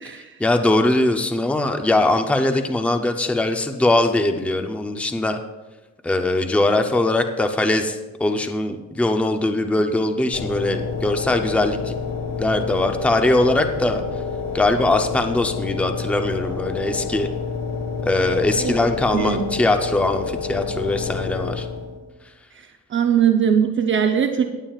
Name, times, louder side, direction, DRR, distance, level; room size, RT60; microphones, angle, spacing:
voice 1, 0.2-5.4 6.0-12.0 12.4-14.0 14.5-17.3 18.0-21.7, left 2 dB, 5° left, 6 dB, 0.6 m, -21 dB
sound 1, 10.3-22.0, left 5 dB, 75° left, 2.1 m, -29 dB
voice 2, 19.1-19.6 22.9-24.5, right 8 dB, 40° right, 5 dB, 0.7 m, -20 dB
18.0 x 8.9 x 2.4 m, 1.1 s
cardioid pair, 150°, 29 cm